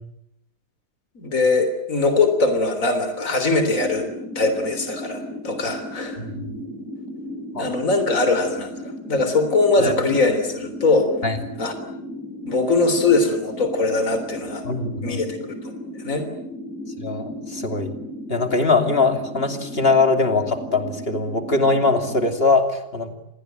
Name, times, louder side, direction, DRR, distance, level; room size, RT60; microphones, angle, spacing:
voice 1, 1.2-4.1 4.4-6.2 7.6-11.1 11.6-11.7 12.5-14.6 15.0-15.4 15.6-15.7 16.0-16.3, left 3 dB, 55° left, 8 dB, 3.8 m, -21 dB
sound 1, 3.7-22.3, equal, 5° right, 7.0 m, -35 dB
voice 2, 6.2-6.5 7.5-7.7 9.8-9.9 11.2-11.4 14.6-15.2 17.0-17.9 18.3-23.1, left 3 dB, 35° left, 6 dB, 3.0 m, -21 dB
28.0 x 20.0 x 9.2 m, 0.78 s
omnidirectional pair, 1.7 m